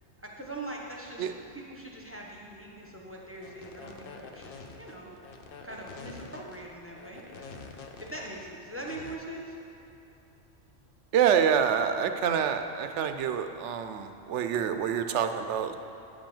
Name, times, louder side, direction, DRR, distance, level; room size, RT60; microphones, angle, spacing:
voice 1, 0.2-5.1 5.6-7.5 8.0-9.6, right 1 dB, 10° right, -2 dB, 1.0 m, -42 dB
sound 1, 3.3-9.1, left 4 dB, 55° left, 0.8 m, -46 dB
voice 2, 11.1-15.7, right 8 dB, 75° right, 8 dB, 0.9 m, -27 dB
9.7 x 5.2 x 7.2 m, 2.9 s
omnidirectional pair, 1.2 m